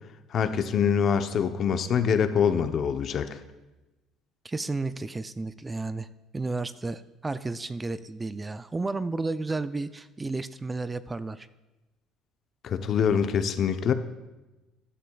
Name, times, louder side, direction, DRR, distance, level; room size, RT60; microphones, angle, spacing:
voice 1, 0.3-3.4 12.6-13.9, left 7 dB, 55° left, 9 dB, 0.8 m, -24 dB
voice 2, 4.4-6.1 6.3-11.5, right 3 dB, 20° right, 14 dB, 0.4 m, -32 dB
13.5 x 10.0 x 2.4 m, 1.1 s
supercardioid pair, 85°, 0 cm